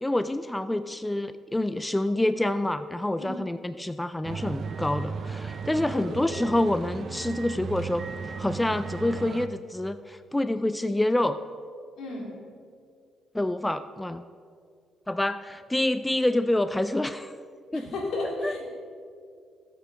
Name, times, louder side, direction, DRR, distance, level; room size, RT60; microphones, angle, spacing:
voice 1, 0.0-8.0 8.4-11.4 13.3-14.2 15.1-17.3 17.7-17.9 18.4-18.6, left 1 dB, 10° left, 12 dB, 0.3 m, -27 dB
sound 1, 4.2-9.5, right 5 dB, 55° right, 0.5 m, -36 dB
voice 2, 5.9-6.4 12.0-12.3 17.7-18.6, left 2 dB, 75° left, -3 dB, 3.0 m, -33 dB
16.5 x 8.2 x 3.4 m, 2.2 s
cardioid pair, 90°, 0 cm